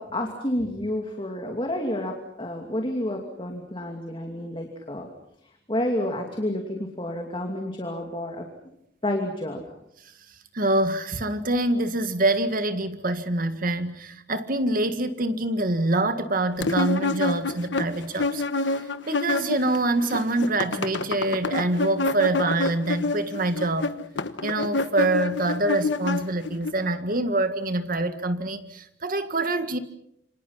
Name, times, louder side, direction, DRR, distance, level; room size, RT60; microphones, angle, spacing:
voice 1, 0.0-5.1 5.7-8.7 9.0-9.6, left 1 dB, 30° left, 2.7 m, -30 dB
voice 2, 10.5-18.4 19.1-23.9 24.4-29.8, right 2 dB, 50° right, 1.9 m, -25 dB
sound 1, 16.6-19.8 20.0-26.7, left 3 dB, 80° left, 1.3 m, -27 dB
28.0 x 25.5 x 5.8 m
head